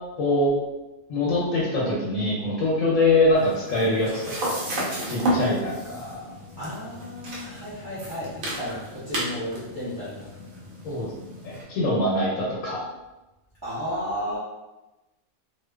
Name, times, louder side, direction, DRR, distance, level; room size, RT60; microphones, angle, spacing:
voice 1, 0.2-0.5 1.1-4.5 5.1-6.2 10.8-11.1 11.4-12.8, left 2 dB, 85° left, -6 dB, 1.0 m, -23 dB
sound 1, 3.3-11.6, equal, 85° right, 1.1 m, -32 dB
voice 2, 6.6-10.3 13.6-14.4, equal, 35° right, -11 dB, 0.4 m, -33 dB
2.6 x 2.1 x 2.2 m, 1.0 s
omnidirectional pair, 1.4 m